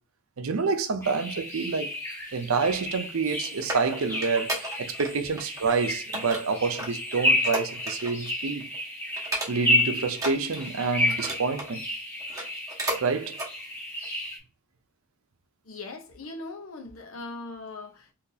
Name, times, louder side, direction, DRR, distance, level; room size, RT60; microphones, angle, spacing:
voice 1, 0.4-1.9 2.3-8.7 9.5-11.9 13.0-13.4, right 4 dB, 85° right, 0.6 m, -28 dB
sound 1, 1.0-14.4, left 1 dB, 10° left, 0.9 m, -31 dB
Cabin hook closed and opened, 3.1-5.1 5.4-5.8 6.1-8.3 8.6-8.8 9.2-9.8 10.1-11.7 12.2-13.0 13.3-13.5 14.0-14.1, right 1 dB, 15° right, 1.1 m, -34 dB
voice 2, 15.6-18.1, left 3 dB, 85° left, 0.9 m, -40 dB
2.8 x 2.8 x 3.8 m
head